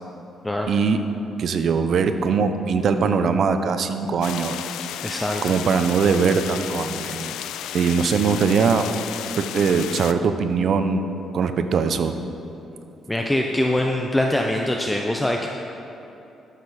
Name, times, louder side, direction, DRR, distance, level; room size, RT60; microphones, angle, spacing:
voice 1, 0.7-1.0 1.4-4.7 5.4-7.4 7.7-8.9 9.4-11.1 11.3-12.2, right 5 dB, 60° right, 9 dB, 0.6 m, -21 dB
sound 1, 4.2-10.1, left 11 dB, 85° left, 0.3 m, -33 dB
voice 2, 5.0-5.4 13.1-15.5, left 1 dB, 10° left, 1 dB, 0.6 m, -23 dB
12.5 x 6.6 x 4.2 m, 2.9 s
cardioid pair, 90°, 0 cm